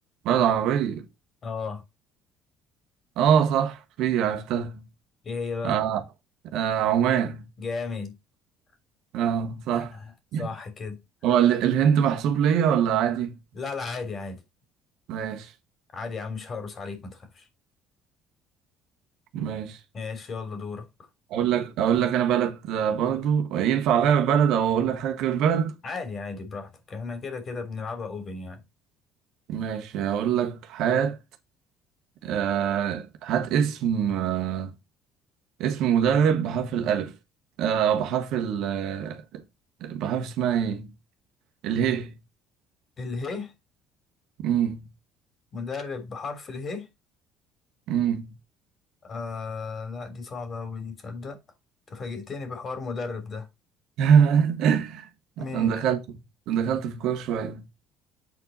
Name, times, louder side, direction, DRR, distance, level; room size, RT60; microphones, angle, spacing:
voice 1, 0.2-1.1 3.2-4.9 5.6-6.0 6.4-7.5 9.1-10.0 10.3-10.4 11.2-13.4 15.1-15.5 19.3-19.8 21.3-25.7 29.5-31.2 32.2-34.7 35.6-37.1 37.6-39.4 39.8-40.9 41.6-42.2 44.4-44.9 47.9-48.3 54.0-55.1 55.4-56.2 56.5-57.7, right 8 dB, 70° right, 1.4 m, -24 dB
voice 2, 1.4-1.8 5.2-5.8 7.6-8.1 9.7-10.1 10.4-11.0 13.5-14.4 15.9-17.5 19.9-20.9 25.8-28.6 43.0-43.5 45.5-46.9 49.0-51.4 51.9-53.5 55.4-55.7, left 4 dB, 40° left, 3.3 m, -34 dB
8.3 x 4.6 x 4.1 m
supercardioid pair, 75°, 0 cm